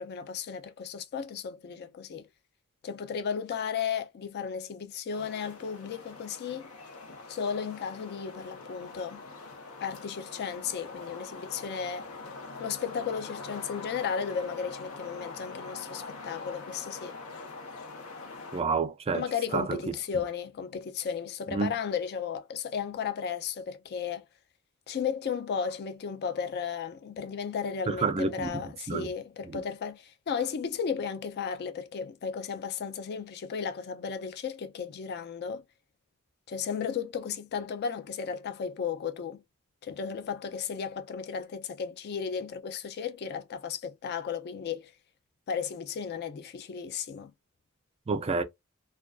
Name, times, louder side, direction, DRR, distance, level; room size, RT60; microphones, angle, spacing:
voice 1, 0.0-2.3 2.8-6.7 7.3-9.2 9.8-12.1 12.6-17.2 19.1-24.3 24.9-35.6 36.5-39.4 39.8-44.9 45.5-47.3, left 6 dB, 50° left, 0.4 m, -34 dB
sound 1, 5.1-18.6, left 3 dB, 85° left, 0.8 m, -44 dB
voice 2, 18.5-19.3 19.5-19.9 21.5-21.7 27.9-29.1 29.4-29.6 48.1-48.4, right 4 dB, 30° right, 0.4 m, -29 dB
2.4 x 2.3 x 2.2 m
head